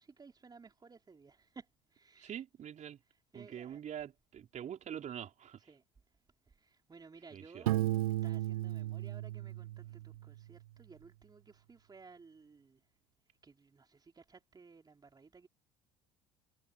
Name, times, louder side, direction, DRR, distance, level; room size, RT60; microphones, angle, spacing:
voice 1, 0.0-2.4 3.3-3.8 5.6-5.8 6.5-7.7 8.2-12.8 13.4-15.5, right 4 dB, 20° right, 3.5 m, -57 dB
voice 2, 2.2-3.0 3.3-5.6 7.3-7.7, right 9 dB, 40° right, 4.4 m, -44 dB
Piano, 7.7-10.4, right 15 dB, 70° right, 0.6 m, -35 dB
figure-of-eight pair, 65°, 19 cm